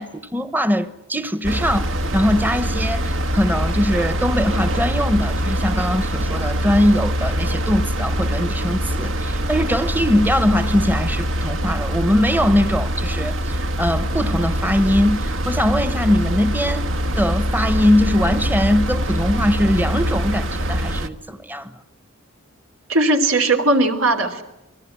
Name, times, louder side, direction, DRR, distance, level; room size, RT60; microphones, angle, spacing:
voice 1, 0.0-16.8 17.2-21.7, equal, 10° right, 0.9 m, -21 dB
sound 1, 1.4-21.1, equal, 70° right, 1.4 m, -23 dB
voice 2, 22.9-24.4, right 2 dB, 85° right, 3.1 m, -18 dB
28.5 x 20.0 x 9.9 m
head